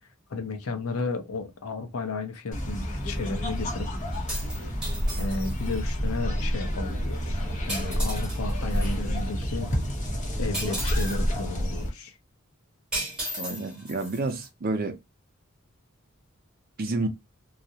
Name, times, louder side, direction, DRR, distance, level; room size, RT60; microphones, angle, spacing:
voice 1, 0.3-3.9 5.2-7.4 7.7-9.7 10.4-12.1, left 3 dB, 80° left, 0.6 m, -33 dB
sound 1, 2.5-11.9, equal, 35° left, 0.7 m, -29 dB
sound 2, 4.1-5.8 7.7-9.0 10.5-11.2 12.9-14.5, right 1 dB, 5° right, 1.1 m, -35 dB
voice 2, 13.4-15.0 16.8-17.1, right 3 dB, 45° right, 0.5 m, -29 dB
2.3 x 2.0 x 2.6 m
head